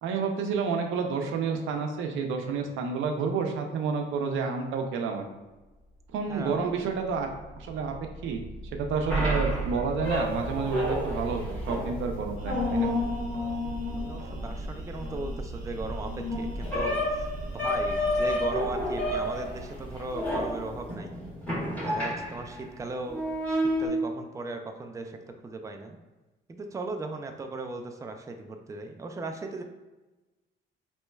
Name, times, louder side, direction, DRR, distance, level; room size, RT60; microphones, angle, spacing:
voice 1, 0.0-5.2 6.1-7.3 7.6-7.9 8.2-8.4 8.7-12.9, right 5 dB, 85° right, 3 dB, 0.5 m, -29 dB
sound 1, 5.6-23.0, equal, 80° left, 1.3 m, -42 dB
voice 2, 6.3-6.8 13.9-21.1 21.8-23.2 23.5-25.2 25.4-26.0 26.5-29.6, right 2 dB, 15° right, 4 dB, 0.4 m, -37 dB
sound 2, 9.1-22.6 23.1-23.9, left 1 dB, 5° left, 1.4 m, -30 dB
sound 3, 12.4-18.4, right 2 dB, 40° right, 0.7 m, -40 dB
4.3 x 3.0 x 2.3 m, 1.1 s
cardioid pair, 90°, 20 cm